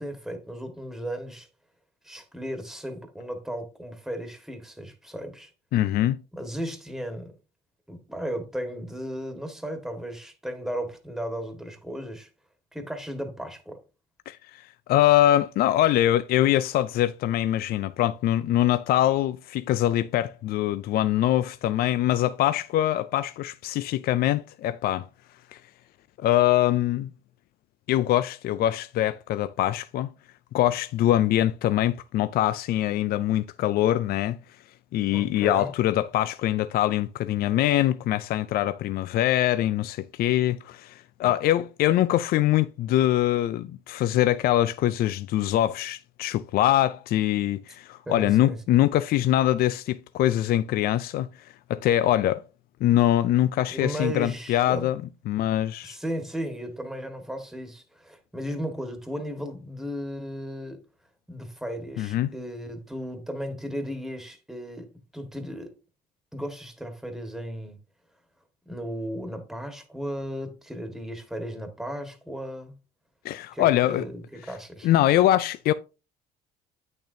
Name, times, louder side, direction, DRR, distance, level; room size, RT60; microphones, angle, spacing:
voice 1, 0.0-1.5 2.0-5.5 6.3-7.3 7.9-12.3 12.7-13.8 35.1-35.7 41.2-41.3 48.0-48.6 53.7-54.9 55.8-60.8 61.3-65.8 66.3-67.8 68.6-72.7 73.5-74.9, equal, ahead, 1.5 m, -35 dB
voice 2, 5.7-6.2 14.3-25.1 25.5-25.6 26.2-27.1 27.9-30.1 30.5-34.4 34.9-52.4 52.8-56.0 62.0-62.3 73.2-74.1 74.8-75.7, left 13 dB, 65° left, 0.4 m, -23 dB
8.6 x 6.5 x 2.7 m
cardioid pair, 110°, 17 cm